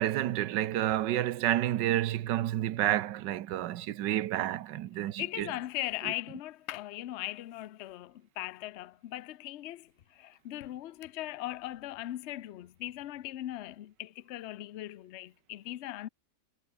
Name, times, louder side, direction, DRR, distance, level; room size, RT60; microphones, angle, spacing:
voice 1, 0.0-5.5, right 13 dB, 80° right, 1.4 m, -30 dB
voice 2, 5.0-16.1, left 15 dB, 65° left, 0.6 m, -39 dB
omnidirectional pair, 1.9 m